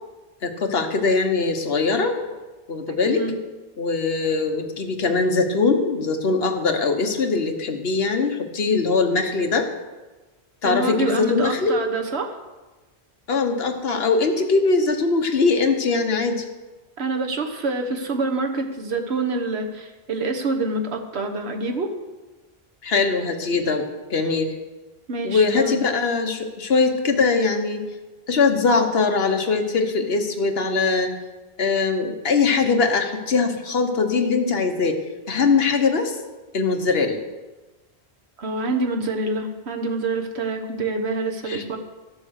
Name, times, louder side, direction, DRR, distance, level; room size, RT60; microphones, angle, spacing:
voice 1, 0.4-2.2 2.7-3.3 3.8-9.7 10.6-11.8 13.3-16.4 22.8-24.5 25.2-27.8 28.3-31.1 31.6-35.0 35.3-36.2 36.5-37.2 41.5-41.6, left 4 dB, 70° left, 5 dB, 1.3 m, -21 dB
voice 2, 10.6-12.4 17.0-21.9 25.1-25.8 38.4-41.8, right 3 dB, 85° right, 4 dB, 1.4 m, -26 dB
13.0 x 7.0 x 6.4 m, 1.2 s
omnidirectional pair, 1.1 m